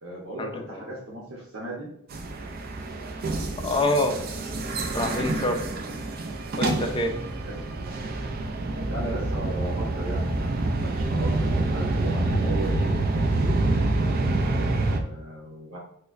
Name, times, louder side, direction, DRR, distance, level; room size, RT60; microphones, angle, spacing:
voice 1, 0.0-1.9 5.9-6.1 7.4-7.8 8.9-12.8 13.1-13.6 14.4-15.8, right 1 dB, 65° right, -5 dB, 0.9 m, -37 dB
sound 1, 2.1-15.0, right 2 dB, 45° right, 0.4 m, -27 dB
voice 2, 3.6-4.2 4.9-5.6 6.6-7.1, left 2 dB, 25° left, 4 dB, 0.4 m, -25 dB
4.5 x 2.2 x 2.5 m, 0.76 s
head